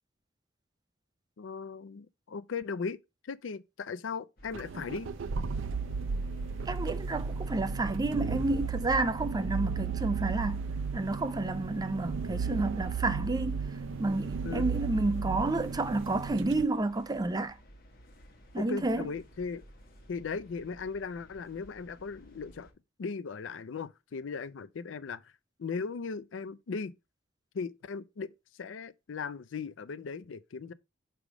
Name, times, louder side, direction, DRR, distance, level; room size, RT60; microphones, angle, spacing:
voice 1, 1.4-3.0 3.2-5.1 14.4-14.7 18.6-19.6 20.1-22.7 23.0-25.2 25.6-26.9 27.5-28.3 28.6-30.7, left 5 dB, 80° left, 0.5 m, -37 dB
sound 1, 4.4-22.7, equal, 50° left, 1.6 m, -56 dB
sound 2, 4.5-16.6, right 5 dB, 80° right, 0.4 m, -34 dB
voice 2, 6.7-10.6 10.9-13.6 14.0-17.6 18.5-19.1, right 2 dB, 20° right, 0.5 m, -30 dB
6.1 x 3.5 x 4.7 m
head